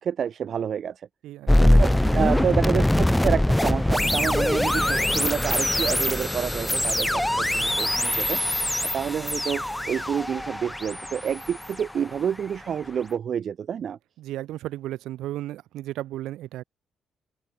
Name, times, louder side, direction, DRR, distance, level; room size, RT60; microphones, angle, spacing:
voice 1, 0.0-1.1 1.8-9.6 9.9-14.0, right 8 dB, 55° right, 0.4 m, -29 dB
voice 2, 1.2-1.9 2.1-2.5 14.2-16.6, right 14 dB, 85° right, 1.0 m, -34 dB
sound 1, 1.5-12.5, left 1 dB, 5° left, 0.7 m, -23 dB
open air
cardioid pair, 90°, 0 cm